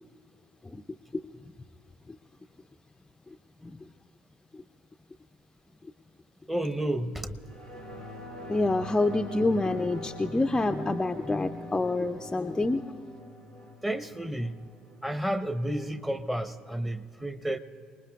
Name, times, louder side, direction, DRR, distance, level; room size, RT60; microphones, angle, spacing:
voice 1, 6.5-7.4 13.8-14.7 15.0-17.6, right 1 dB, 5° right, 11 dB, 0.9 m, -31 dB
sound 1, 7.4-16.4 16.8-16.9, left 1 dB, 85° right, 4.9 m, -43 dB
voice 2, 8.5-12.8, left 2 dB, 15° left, 7 dB, 0.5 m, -27 dB
30.0 x 20.0 x 2.3 m, 2.4 s
figure-of-eight pair, 55°, 4 cm